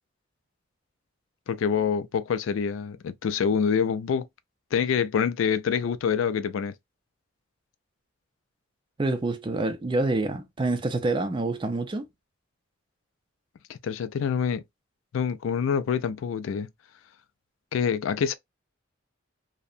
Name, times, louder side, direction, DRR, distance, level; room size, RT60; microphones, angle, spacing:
voice 1, 1.5-4.3 4.7-6.7 13.7-14.6 15.1-16.7 17.7-18.3, left 7 dB, 80° left, 0.3 m, -26 dB
voice 2, 9.0-12.0, right 2 dB, 25° right, 0.4 m, -27 dB
2.7 x 2.1 x 2.4 m
head